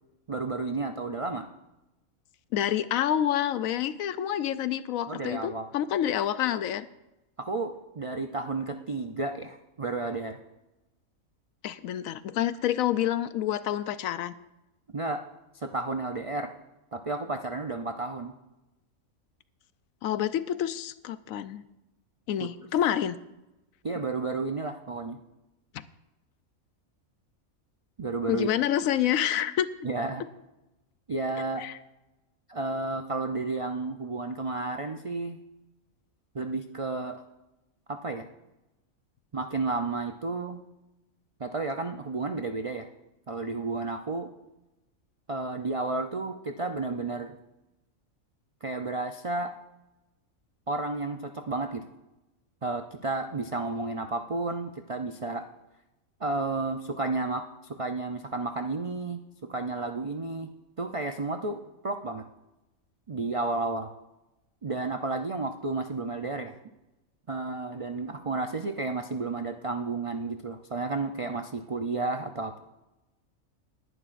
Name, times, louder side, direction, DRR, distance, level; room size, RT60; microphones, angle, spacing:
voice 1, 0.3-1.5 5.1-5.7 7.4-10.4 14.9-15.2 15.5-16.5 16.9-18.3 22.4-22.7 23.8-25.2 28.0-28.5 29.8-30.2 31.1-31.6 32.5-35.4 36.3-37.2 37.9-38.3 39.3-40.6 41.4-42.9 43.3-44.3 45.3-47.3 48.6-49.5 50.7-51.8 52.6-55.4 56.2-60.5 60.8-62.2 63.1-63.9 64.6-66.6 67.3-72.6, right 3 dB, 60° right, 6 dB, 0.3 m, -32 dB
voice 2, 2.5-6.9 11.6-14.3 20.0-21.6 22.3-23.2 25.7-25.8 28.3-29.7 31.6-31.8, left 11 dB, 80° left, 14 dB, 1.0 m, -28 dB
20.0 x 11.0 x 2.5 m, 0.98 s
omnidirectional pair, 1.4 m